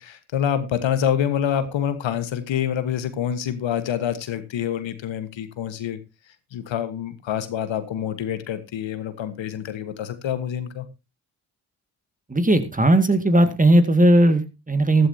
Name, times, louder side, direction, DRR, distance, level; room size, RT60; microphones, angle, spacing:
voice 1, 0.0-6.0 6.5-10.8, left 9 dB, 75° left, 11 dB, 1.5 m, -26 dB
voice 2, 12.3-15.1, right 1 dB, 15° right, 9 dB, 2.1 m, -17 dB
14.5 x 12.5 x 2.8 m, 0.26 s
supercardioid pair, 50°, 46 cm